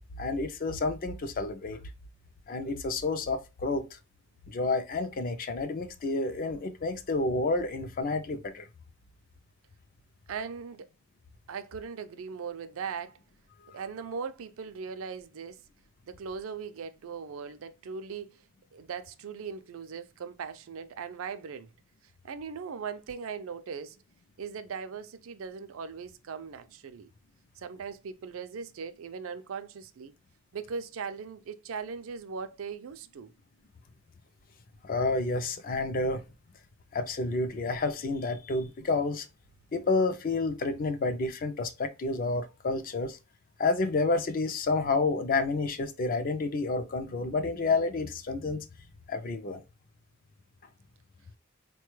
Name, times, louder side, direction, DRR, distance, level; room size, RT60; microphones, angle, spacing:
voice 1, 0.2-1.8 2.5-4.0 4.5-8.7 13.7-13.8 34.8-36.2 36.9-39.3 39.7-43.2 43.6-48.7 49.1-49.6, left 3 dB, 40° left, 0.4 m, -29 dB
voice 2, 10.3-10.9 11.5-13.2 13.7-15.6 16.1-18.4 18.7-21.7 22.2-24.0 24.4-27.1 27.6-30.1 30.5-33.3, right 6 dB, 75° right, 0.4 m, -39 dB
4.0 x 2.2 x 3.0 m
head